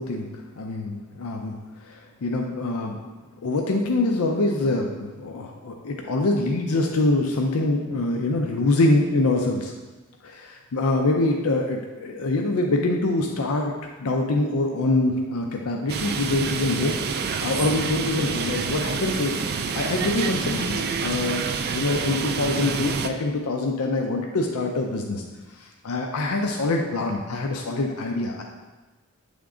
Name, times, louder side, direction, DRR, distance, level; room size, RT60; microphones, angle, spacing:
voice 1, 0.0-3.0 3.4-9.7 10.2-13.7 14.0-17.0 17.4-19.4 19.7-21.4 21.7-25.2 25.5-28.4, left 2 dB, 75° left, 1 dB, 0.5 m, -25 dB
sound 1, 15.9-23.1, right 5 dB, 45° right, 0.3 m, -28 dB
8.5 x 3.6 x 3.7 m, 1.2 s
head